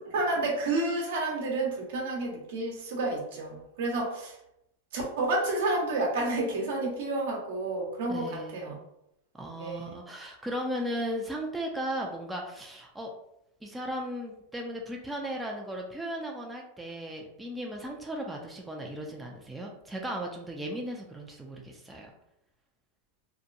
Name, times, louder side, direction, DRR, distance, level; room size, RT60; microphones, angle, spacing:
voice 1, 0.1-4.4 4.9-8.8 9.6-9.9, right 2 dB, 75° right, -1 dB, 0.8 m, -30 dB
voice 2, 8.1-8.8 9.4-13.1 13.6-22.1, equal, 5° right, -1 dB, 0.4 m, -36 dB
2.7 x 2.1 x 2.5 m, 0.80 s
hypercardioid pair, 125°, 0 cm